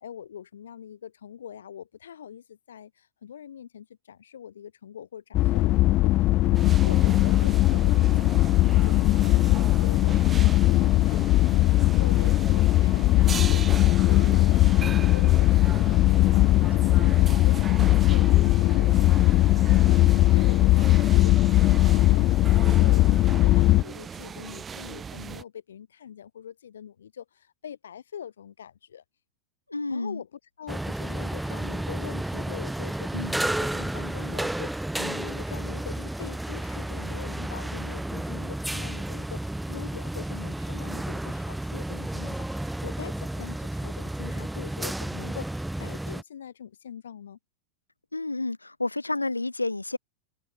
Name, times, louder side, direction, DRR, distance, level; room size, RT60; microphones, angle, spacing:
voice 1, 0.0-6.1 6.4-8.1 8.5-29.0 29.9-47.4, left 9 dB, 65° left, 3.1 m, -43 dB
sound 1, 5.3-23.8, left 17 dB, 35° left, 0.3 m, -20 dB
sound 2, 6.5-25.4, right 6 dB, 20° right, 1.6 m, -38 dB
voice 2, 29.7-30.2 33.1-33.4 48.1-50.0, left 2 dB, 80° left, 0.7 m, -30 dB
sound 3, 30.7-46.2, right 1 dB, 5° right, 0.9 m, -32 dB
figure-of-eight pair, 90°, 0 cm